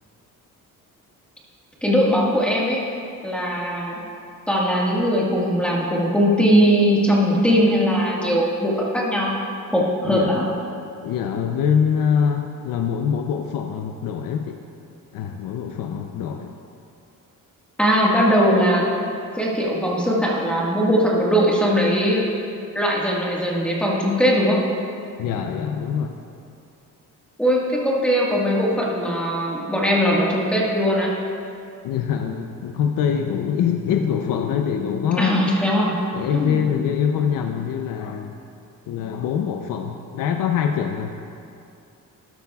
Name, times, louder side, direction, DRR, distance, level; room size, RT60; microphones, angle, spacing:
voice 1, 1.8-2.8 3.2-3.9 4.5-9.3 9.7-10.5 17.8-18.8 19.4-22.2 22.7-24.6 27.4-31.1 35.2-36.0 36.3-36.6, equal, 5° left, -4 dB, 1.5 m, -20 dB
voice 2, 10.0-10.6 11.0-14.6 15.1-16.6 25.2-26.2 31.8-35.4 36.1-38.4 38.9-41.1, left 7 dB, 85° left, 4 dB, 0.6 m, -24 dB
13.0 x 11.5 x 2.3 m, 2.5 s
cardioid pair, 160°, 33 cm